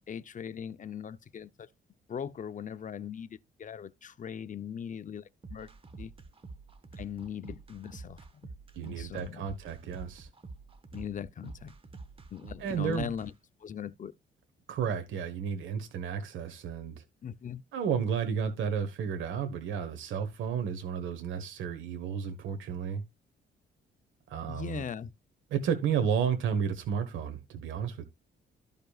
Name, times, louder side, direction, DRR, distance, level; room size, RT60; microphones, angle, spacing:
voice 1, 0.1-1.7 2.1-5.7 6.0-6.1 7.0-8.2 8.8-9.5 10.9-11.7 12.3-13.3 13.6-14.1 17.2-17.6 24.5-25.1, left 8 dB, 40° left, 0.7 m, -39 dB
sound 1, 5.4-13.3, right 3 dB, 25° right, 1.3 m, -47 dB
voice 2, 8.7-10.3 12.6-13.1 14.7-17.0 17.7-23.0 24.3-24.8 25.5-28.1, right 7 dB, 80° right, 1.4 m, -32 dB
13.5 x 5.3 x 2.4 m
cardioid pair, 90°, 20 cm